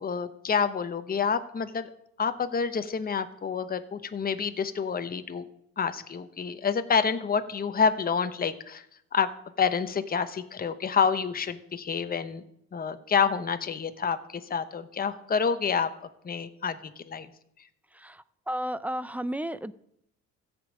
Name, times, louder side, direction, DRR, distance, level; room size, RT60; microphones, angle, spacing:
voice 1, 0.0-1.9 2.2-5.5 5.8-8.8 9.1-9.3 9.6-12.4 12.7-15.9 16.2-17.3, left 6 dB, 30° left, 10 dB, 0.9 m, -28 dB
voice 2, 17.9-19.7, equal, 5° right, 15 dB, 0.5 m, -33 dB
14.0 x 5.3 x 8.5 m, 0.74 s
cardioid pair, 90°, 30 cm